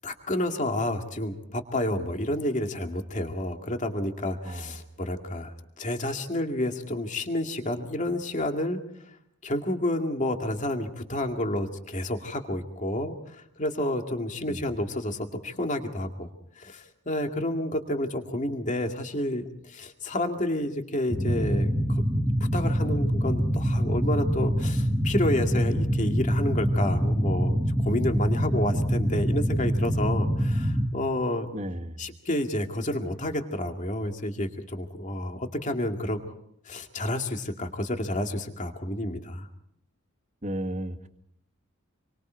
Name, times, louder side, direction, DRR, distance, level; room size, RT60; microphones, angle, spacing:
voice 1, 0.0-8.8 9.4-16.3 16.6-22.0 22.5-31.5 32.0-36.2 36.7-39.5, left 1 dB, 35° left, 4 dB, 2.2 m, -30 dB
voice 2, 4.4-4.8 14.5-14.6 31.5-32.0 40.4-41.1, right 1 dB, 35° right, 5 dB, 2.0 m, -34 dB
sound 1, 21.1-30.9, equal, 5° right, 1.5 m, -25 dB
28.0 x 24.0 x 4.6 m, 0.72 s
head